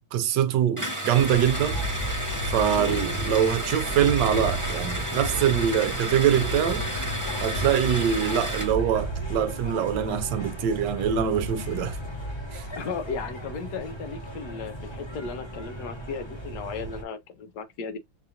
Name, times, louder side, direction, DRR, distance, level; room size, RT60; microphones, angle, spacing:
voice 1, 0.0-1.8 2.4-6.9 7.4-12.0 12.5-12.6, right 9 dB, 70° right, 1.2 m, -24 dB
sound 1, 0.8-8.8, equal, 10° right, 1.1 m, -32 dB
sound 2, 1.2-17.0, right 1 dB, 20° left, 0.9 m, -33 dB
voice 2, 2.7-3.1 12.8-18.0, left 5 dB, 70° left, 1.0 m, -35 dB
6.6 x 2.4 x 2.8 m
omnidirectional pair, 2.1 m